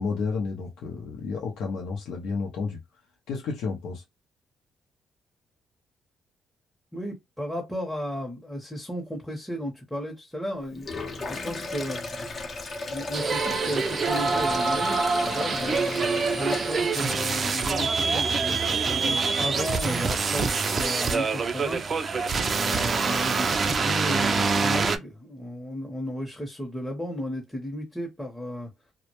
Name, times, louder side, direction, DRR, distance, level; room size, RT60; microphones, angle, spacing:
voice 1, 0.0-2.8 3.3-4.0, left 4 dB, 85° left, 0.6 m, -31 dB
voice 2, 6.9-12.0 12.9-21.8 22.5-28.7, equal, 5° left, 0.7 m, -34 dB
Sink (filling or washing), 10.7-17.6, left 3 dB, 40° left, 0.6 m, -35 dB
sound 1, 13.1-25.0, right 4 dB, 40° right, 0.4 m, -25 dB
2.1 x 2.1 x 2.9 m
cardioid pair, 90°, 0 cm